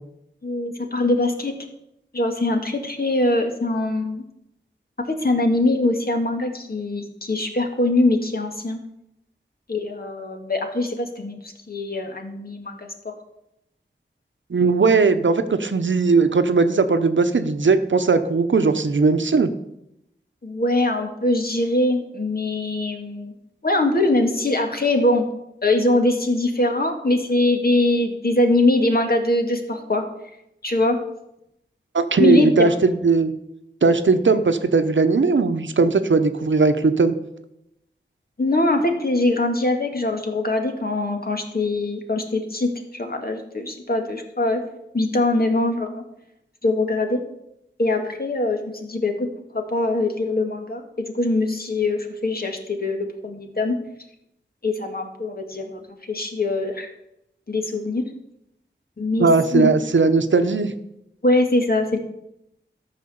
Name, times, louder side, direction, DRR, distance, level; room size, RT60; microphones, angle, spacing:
voice 1, 0.4-1.5 2.1-4.2 5.1-8.8 9.7-13.1 20.4-23.3 23.6-25.3 25.6-30.1 30.6-31.0 32.2-32.7 38.4-44.6 44.9-46.0 46.6-47.2 47.8-49.3 49.5-53.8 54.6-56.9 57.5-58.0 59.0-59.3 59.5-59.7 61.2-62.0, left 2 dB, 55° left, 4 dB, 1.9 m, -22 dB
voice 2, 14.5-19.5 31.9-33.3 33.8-37.1 59.2-60.7, right 4 dB, 80° right, 9 dB, 0.9 m, -18 dB
13.5 x 6.0 x 7.0 m, 0.83 s
wide cardioid pair, 70°, 19 cm